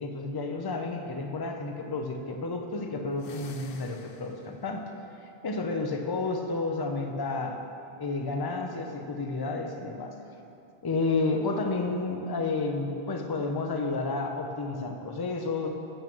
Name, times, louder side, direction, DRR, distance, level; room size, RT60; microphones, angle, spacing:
voice 1, 0.0-4.8 5.2-7.6 8.0-10.1 10.8-15.7, left 3 dB, 30° left, 4 dB, 0.6 m, -31 dB
sound 1, 3.1-4.7, left 5 dB, 70° left, 0.8 m, -48 dB
8.6 x 6.0 x 6.0 m, 2.7 s
omnidirectional pair, 1.0 m